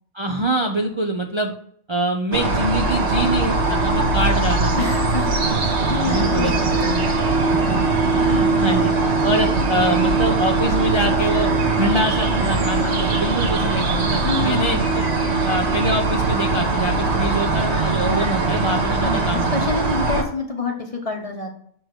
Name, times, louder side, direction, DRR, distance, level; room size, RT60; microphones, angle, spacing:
voice 1, 0.1-1.5 1.9-5.0 6.0-7.0 7.5-7.8 8.1-8.9 9.2-11.5 11.8-15.1 15.4-19.6, right 1 dB, 30° right, 3 dB, 0.5 m, -24 dB
sound 1, 2.3-20.2, right 3 dB, 50° right, 1.4 m, -20 dB
voice 2, 4.8-5.3 5.8-6.8 14.2-14.8 19.0-21.5, left 3 dB, 25° left, 2 dB, 1.1 m, -27 dB
6.4 x 4.6 x 6.2 m, 0.64 s
omnidirectional pair, 1.5 m